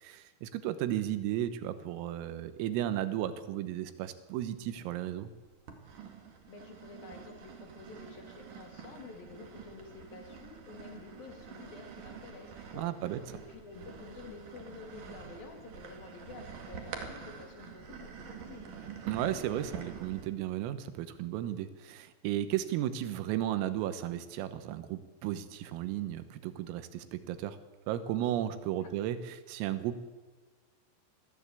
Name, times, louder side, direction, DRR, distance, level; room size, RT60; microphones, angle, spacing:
voice 1, 0.0-5.3 12.7-13.2 19.1-27.6 27.9-30.0, right 12 dB, 85° right, 12 dB, 3.8 m, -34 dB
sound 1, 4.4-5.1 5.7-20.3, right 6 dB, 50° right, 3.1 m, -47 dB
voice 2, 6.5-12.9 13.3-18.7 28.8-28.9, left 4 dB, 55° left, 4 dB, 3.6 m, -50 dB
22.5 x 15.0 x 8.4 m, 1.3 s
omnidirectional pair, 5.9 m